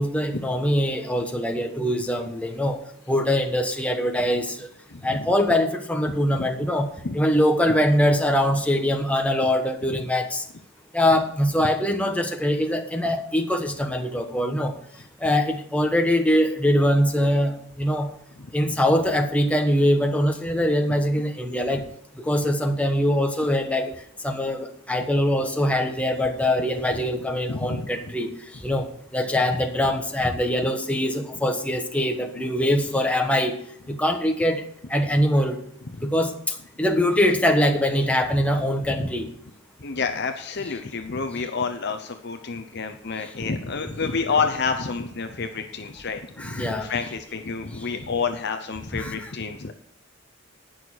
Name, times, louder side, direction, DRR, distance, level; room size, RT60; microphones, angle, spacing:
voice 1, 0.0-2.8 3.1-4.7 5.0-10.4 10.9-14.7 15.2-18.1 18.5-21.8 22.2-23.9 24.2-28.3 28.6-33.5 33.9-35.6 36.0-39.3 46.4-46.9 48.9-49.1, left 1 dB, 5° left, 4 dB, 1.2 m, -23 dB
voice 2, 4.9-5.3 6.1-6.5 7.0-7.1 9.9-10.0 27.5-27.9 35.9-36.0 39.8-49.7, left 5 dB, 55° left, 7 dB, 0.8 m, -29 dB
18.5 x 6.4 x 4.6 m, 0.69 s
head